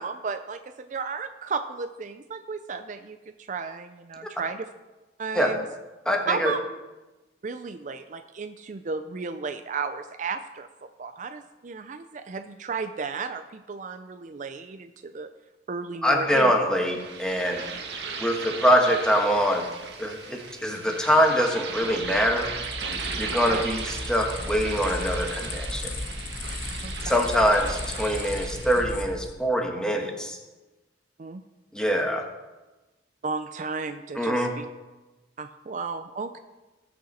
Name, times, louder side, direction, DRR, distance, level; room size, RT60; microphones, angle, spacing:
voice 1, 0.0-4.7 5.2-5.7 6.3-6.6 7.4-10.7 11.0-15.3 15.7-16.5 23.5-23.6 26.8-27.2 31.2-31.4 33.2-34.6 35.4-36.4, right 5 dB, 45° right, 9 dB, 0.4 m, -33 dB
voice 2, 6.0-6.5 16.0-17.6 18.2-19.7 20.0-22.5 23.2-25.9 27.0-30.4 31.7-32.3 34.2-34.5, equal, 5° left, 2 dB, 1.4 m, -24 dB
sound 1, 16.8-29.0, right 5 dB, 70° right, 1.5 m, -37 dB
sound 2, 21.7-29.4, left 2 dB, 50° left, 1.2 m, -35 dB
19.0 x 6.4 x 4.2 m, 1.1 s
head